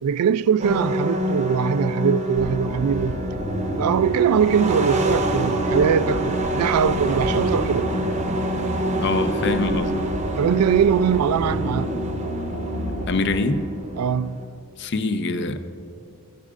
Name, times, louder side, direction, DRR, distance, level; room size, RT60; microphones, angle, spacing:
voice 1, 0.0-3.2 3.8-7.9 10.4-12.0 14.0-14.5, right 7 dB, 90° right, 0.3 m, -21 dB
sound 1, 0.6-14.5, right 1 dB, 30° right, 0.6 m, -27 dB
sound 2, 2.3-13.1, right 1 dB, 90° left, 2.8 m, -30 dB
voice 2, 9.0-10.1 13.1-13.7 14.8-15.6, left 3 dB, 50° left, 0.5 m, -24 dB
15.0 x 11.5 x 2.5 m
head